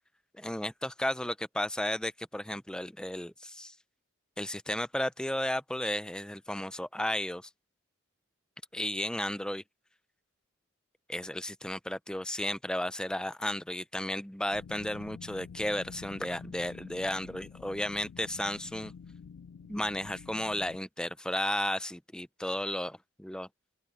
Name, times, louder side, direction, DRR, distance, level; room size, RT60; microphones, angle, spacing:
voice 1, 0.4-3.7 4.4-7.5 8.7-9.6 11.1-18.9 19.7-23.5, left 1 dB, 5° left, 0.5 m, -34 dB
sound 1, 14.5-20.8, left 6 dB, 75° left, 0.4 m, -48 dB
open air
head